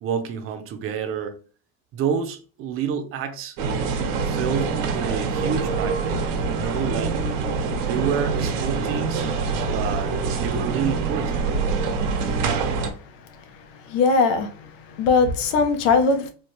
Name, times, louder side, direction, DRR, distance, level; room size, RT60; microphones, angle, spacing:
voice 1, 0.0-1.4 1.9-3.6 4.2-7.2 7.8-9.2 9.7-11.5, right 7 dB, 35° right, 0.6 m, -29 dB
sound 1, 3.6-12.9, right 4 dB, 90° right, 1.2 m, -25 dB
voice 2, 13.9-16.3, left 4 dB, 90° left, 0.9 m, -20 dB
4.4 x 2.3 x 3.1 m
cardioid pair, 160°, 37 cm